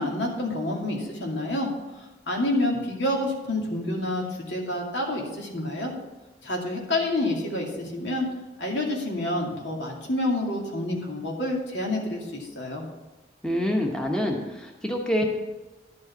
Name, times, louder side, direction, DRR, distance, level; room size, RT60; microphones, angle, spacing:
voice 1, 0.0-1.7 2.0-5.9 6.4-8.3 8.6-12.8, left 1 dB, 80° left, -1 dB, 2.5 m, -28 dB
voice 2, 13.4-15.2, equal, 5° left, 0 dB, 1.0 m, -26 dB
11.5 x 5.5 x 7.0 m, 1.1 s
head